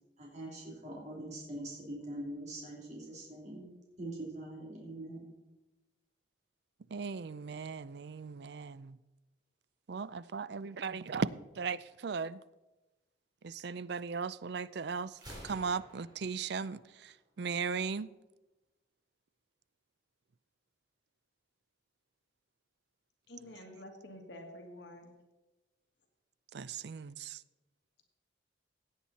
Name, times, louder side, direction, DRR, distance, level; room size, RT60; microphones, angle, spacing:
voice 1, 0.2-3.7 4.0-5.3, right 1 dB, 40° right, 3.1 m, -43 dB
voice 2, 6.9-9.0 9.9-11.3 11.6-12.4 13.4-15.1 15.4-18.1 26.5-27.4, right 5 dB, 60° right, 0.4 m, -37 dB
Gunshot gunfire, 15.1-17.1, equal, 20° right, 3.6 m, -51 dB
voice 3, 23.3-25.1, left 1 dB, 65° left, 2.0 m, -49 dB
16.5 x 8.8 x 4.2 m
head